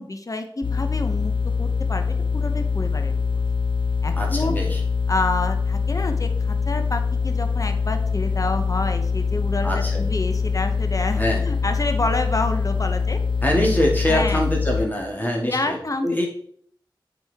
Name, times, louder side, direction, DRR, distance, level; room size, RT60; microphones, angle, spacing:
voice 1, 0.0-1.3 1.6-3.2 4.0-4.6 5.1-13.2 13.6-13.7 14.1-14.4 15.4-16.3, left 2 dB, 40° left, 7 dB, 0.8 m, -28 dB
sound 1, 0.6-14.8, left 5 dB, 75° left, 0.9 m, -24 dB
voice 2, 4.2-4.8 9.6-10.0 11.2-11.4 13.4-15.8 16.0-16.3, left 1 dB, 20° left, -1 dB, 2.4 m, -23 dB
8.8 x 5.0 x 3.6 m, 0.62 s
wide cardioid pair, 45°, 8 cm